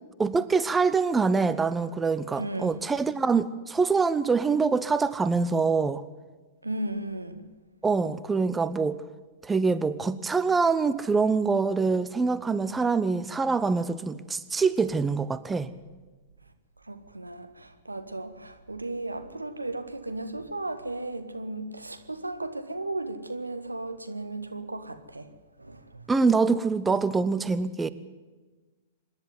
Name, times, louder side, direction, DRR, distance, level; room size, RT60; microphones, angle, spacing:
voice 1, 0.2-6.0 7.8-9.0 9.4-15.7 26.1-27.9, right 4 dB, 10° right, 0.7 m, -25 dB
voice 2, 2.4-2.7 6.6-7.5 16.8-25.3 25.6-26.0, right 2 dB, 90° right, 1.5 m, -35 dB
25.5 x 10.5 x 9.5 m
figure-of-eight pair, 105°, 0 cm